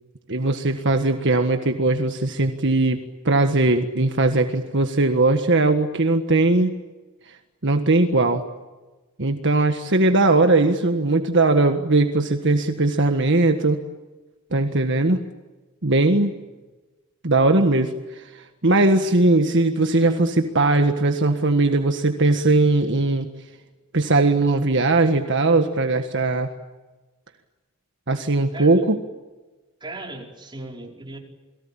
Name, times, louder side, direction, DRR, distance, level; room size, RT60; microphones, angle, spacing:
voice 1, 0.3-6.7 7.6-8.4 9.2-13.8 14.5-15.2 15.8-16.3 17.2-23.3 23.9-26.5 28.1-29.0, right 2 dB, 55° right, 6 dB, 1.6 m, -19 dB
voice 2, 28.5-28.9 29.8-31.2, right 2 dB, 20° right, 1 dB, 5.3 m, -37 dB
29.5 x 22.5 x 8.9 m, 1.2 s
head